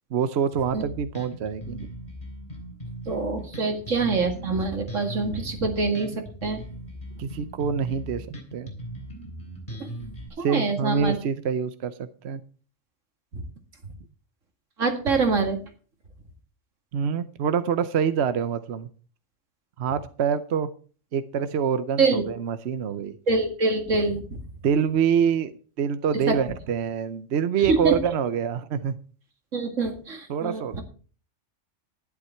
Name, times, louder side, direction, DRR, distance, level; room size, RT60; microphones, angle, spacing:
voice 1, 0.1-1.9 7.2-8.7 10.4-12.4 16.9-18.9 19.8-20.7 21.1-23.2 24.6-29.0 30.3-30.8, right 7 dB, 65° right, 12 dB, 1.0 m, -26 dB
Bass guitar, 0.7-10.3, equal, 30° left, 3.9 m, -39 dB
voice 2, 3.1-6.1 6.4-6.6 7.2-7.3 9.8-9.9 10.4-11.2 13.3-13.4 14.8-15.6 22.0-22.2 23.3-24.4 26.3-26.4 27.6-28.0 29.5-30.8, right 3 dB, 90° right, 4 dB, 2.5 m, -25 dB
12.0 x 10.5 x 4.4 m, 0.39 s
omnidirectional pair, 1.3 m